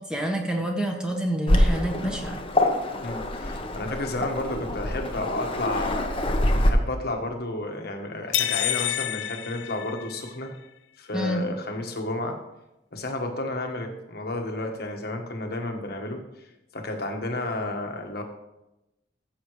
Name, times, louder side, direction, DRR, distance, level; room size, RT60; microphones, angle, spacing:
voice 1, 0.1-2.4 11.1-11.4, right 1 dB, 5° right, 1 dB, 1.2 m, -28 dB
Waves surf, 1.5-6.7, left 1 dB, 30° left, 0.9 m, -25 dB
voice 2, 3.0-6.1 6.6-10.5 11.0-12.4 12.9-16.2 16.7-18.2, left 2 dB, 60° left, 3 dB, 1.4 m, -31 dB
sound 1, 8.3-10.5, left 13 dB, 80° left, 0.4 m, -28 dB
14.5 x 7.2 x 3.2 m, 0.95 s
head